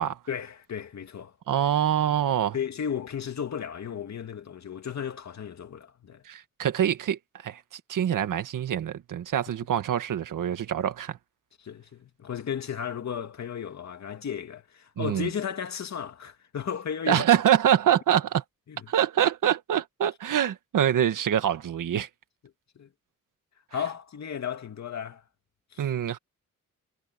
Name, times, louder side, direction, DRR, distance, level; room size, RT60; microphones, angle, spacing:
voice 1, 0.3-1.3 2.5-6.2 11.6-17.2 18.7-18.9 22.8-22.9 23.7-25.2 25.7-25.9, left 8 dB, 60° left, 2.7 m, -34 dB
voice 2, 1.5-2.6 6.3-11.2 15.0-15.3 17.1-18.4 18.9-22.1 25.8-26.2, right 10 dB, 85° right, 1.8 m, -25 dB
wide cardioid pair, 115°, 31 cm